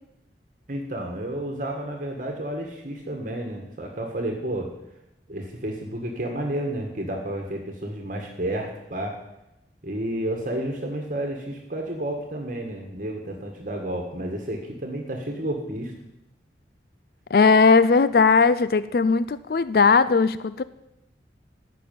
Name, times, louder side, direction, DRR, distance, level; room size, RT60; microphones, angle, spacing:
voice 1, 0.7-4.7 5.3-9.2 9.8-15.9, right 1 dB, 45° right, 2 dB, 1.6 m, -31 dB
voice 2, 17.3-20.6, left 4 dB, 55° left, 15 dB, 0.4 m, -18 dB
15.0 x 6.1 x 9.2 m, 0.90 s
head